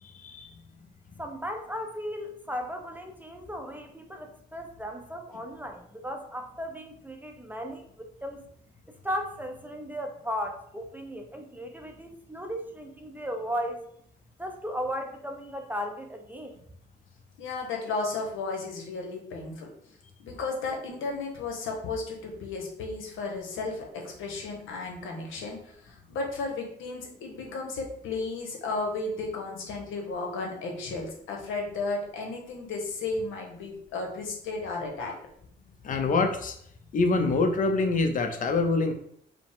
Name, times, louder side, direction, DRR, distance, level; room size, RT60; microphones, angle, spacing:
voice 1, 0.0-0.5 35.8-36.6 36.9-38.9, left 3 dB, 40° left, 6 dB, 0.6 m, -25 dB
voice 2, 1.2-8.4 8.9-13.8 14.4-16.6, equal, 10° right, 4 dB, 0.5 m, -36 dB
voice 3, 17.4-19.7 20.2-35.1, left 3 dB, 85° left, 1 dB, 1.0 m, -34 dB
4.9 x 2.0 x 3.5 m, 0.67 s
cardioid pair, 90°, 20 cm